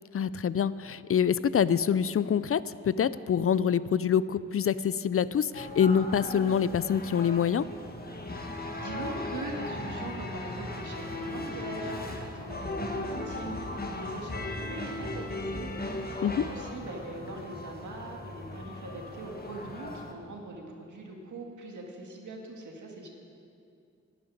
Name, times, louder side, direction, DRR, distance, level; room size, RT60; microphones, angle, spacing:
voice 1, 0.1-7.7 16.2-16.5, left 8 dB, 50° left, 17 dB, 0.4 m, -26 dB
sound 1, 5.5-20.1, left 2 dB, 30° left, 1.6 m, -37 dB
voice 2, 8.7-23.1, right 2 dB, 80° right, 1 dB, 2.0 m, -42 dB
11.0 x 7.5 x 9.8 m, 2.5 s
cardioid pair, 50°, 30 cm